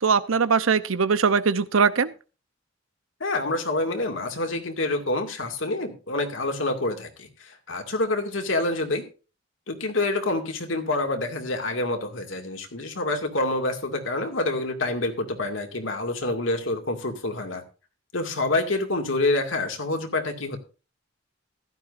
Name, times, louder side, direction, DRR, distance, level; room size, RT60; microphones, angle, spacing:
voice 1, 0.0-2.1, right 5 dB, 90° right, 14 dB, 0.8 m, -21 dB
voice 2, 3.2-9.1 9.7-17.6 18.1-20.6, left 2 dB, 70° left, 4 dB, 2.3 m, -27 dB
15.5 x 12.0 x 2.6 m, 0.33 s
head